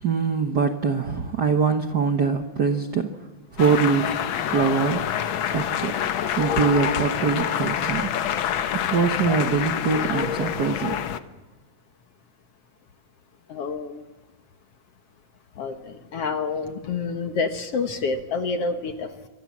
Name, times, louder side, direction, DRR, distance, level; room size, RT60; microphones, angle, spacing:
voice 1, 0.0-3.2 3.5-4.1 4.5-5.1 5.5-6.0 6.4-8.1 8.7-11.0, right 5 dB, 65° right, 7 dB, 1.0 m, -23 dB
sound 1, 3.6-11.2, left 9 dB, 75° left, 1.1 m, -26 dB
voice 2, 13.5-14.0 15.6-19.3, left 4 dB, 60° left, 8 dB, 1.9 m, -28 dB
28.0 x 24.0 x 7.4 m, 1.2 s
omnidirectional pair, 3.7 m